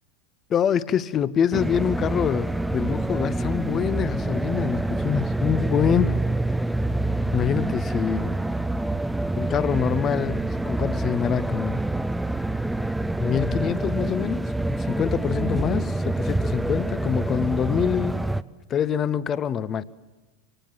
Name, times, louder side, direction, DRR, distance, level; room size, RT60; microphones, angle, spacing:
voice 1, 0.5-6.2 7.3-8.3 9.4-11.8 13.2-14.5 14.9-18.2 18.7-19.8, left 8 dB, 30° left, 0.8 m, -25 dB
sound 1, 1.5-18.4, right 2 dB, 5° right, 0.6 m, -26 dB
24.0 x 18.0 x 7.7 m
hypercardioid pair, 90°, 0 cm